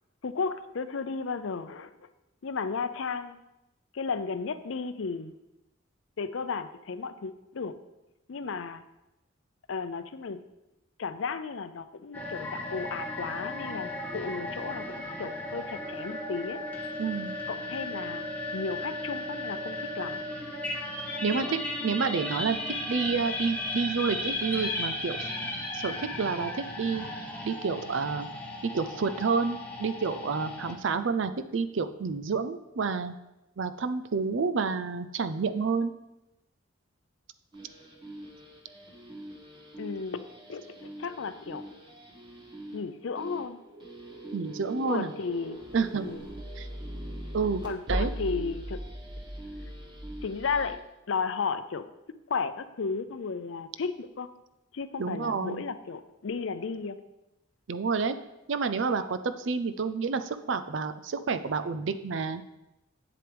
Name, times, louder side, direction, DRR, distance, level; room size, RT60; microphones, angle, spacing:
voice 1, 0.2-2.1 2.4-3.4 3.9-5.4 6.2-7.7 8.3-8.8 9.7-10.4 11.0-14.9 15.2-16.6 17.5-20.2 21.4-21.6 39.8-41.6 42.7-43.6 44.9-45.6 46.0-46.3 47.6-48.8 50.2-50.8 51.1-51.9 52.3-54.3 54.7-57.0, left 5 dB, 70° left, 12 dB, 0.5 m, -34 dB
sound 1, 12.1-30.8, left 1 dB, 10° left, 1.0 m, -35 dB
voice 2, 17.0-17.4 21.2-22.6 22.9-25.2 25.7-27.0 27.4-28.3 28.6-33.1 33.6-35.9 44.3-45.1 45.7-46.1 46.6-46.7 47.3-47.6 47.9-48.1 55.0-55.6 57.7-58.2 58.5-62.4, right 5 dB, 65° right, 11 dB, 0.5 m, -29 dB
sound 2, 37.5-50.8, right 1 dB, 25° right, 1.3 m, -40 dB
8.5 x 7.7 x 3.4 m, 0.93 s
head